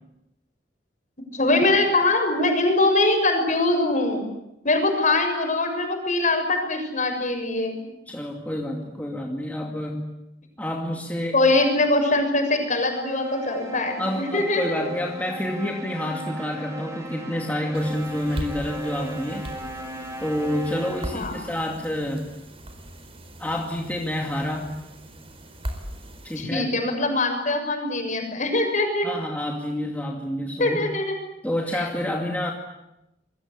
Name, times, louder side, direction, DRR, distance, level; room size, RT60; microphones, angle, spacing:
voice 1, 1.3-4.2 4.6-7.8 11.3-14.8 21.1-21.4 26.4-29.1 30.6-31.1 31.7-31.8, left 2 dB, 45° left, 4 dB, 7.0 m, -22 dB
voice 2, 8.1-10.1 10.6-11.4 14.0-19.5 20.2-22.2 23.4-24.8 26.2-26.7 29.0-30.9 31.4-32.5, left 1 dB, 10° left, 0 dB, 2.3 m, -28 dB
sound 1, 12.9-21.4, right 2 dB, 15° right, 4.4 m, -37 dB
sound 2, 17.7-26.4, equal, 30° right, 4.6 m, -39 dB
27.5 x 22.5 x 8.5 m, 0.89 s
head